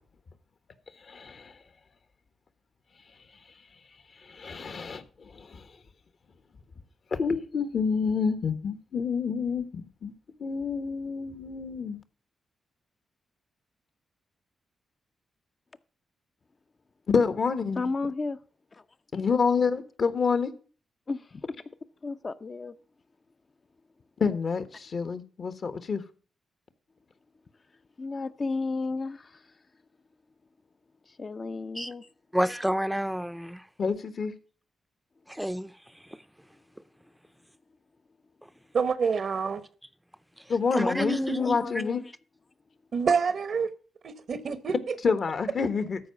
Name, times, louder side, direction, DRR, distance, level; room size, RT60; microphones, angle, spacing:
voice 1, 1.0-1.5 4.2-5.6 7.1-10.1 10.4-12.0 17.1-17.9 19.1-20.5 24.2-26.0 33.8-34.3 40.5-42.0 45.0-46.0, left 5 dB, 60° left, 1.3 m, -28 dB
voice 2, 17.8-18.4 18.7-18.8 21.1-21.5 22.0-22.7 28.0-29.4 31.1-32.1 41.4-42.0, left 3 dB, 45° left, 0.7 m, -33 dB
voice 3, 32.3-33.6 35.3-35.7 40.7-41.6, equal, 5° right, 0.6 m, -29 dB
voice 4, 38.7-39.6 42.9-43.7 44.0-45.0, right 5 dB, 65° right, 1.0 m, -27 dB
13.5 x 4.7 x 6.9 m
supercardioid pair, 50°, 0 cm